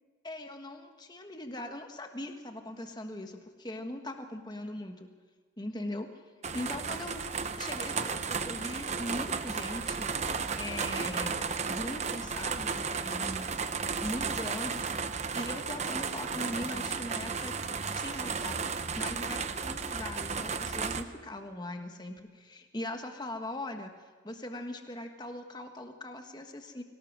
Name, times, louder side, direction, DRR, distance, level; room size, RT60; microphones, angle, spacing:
voice 1, 0.2-5.1 5.6-6.1 6.5-7.2 7.6-10.1 10.6-13.5 14.0-14.9 15.3-17.5 17.8-18.6 18.9-23.9 24.2-26.8, left 1 dB, 20° left, 5 dB, 1.4 m, -40 dB
sound 1, 6.4-21.0, right 5 dB, 35° right, 0.8 m, -34 dB
23.5 x 17.5 x 6.3 m, 1.5 s
head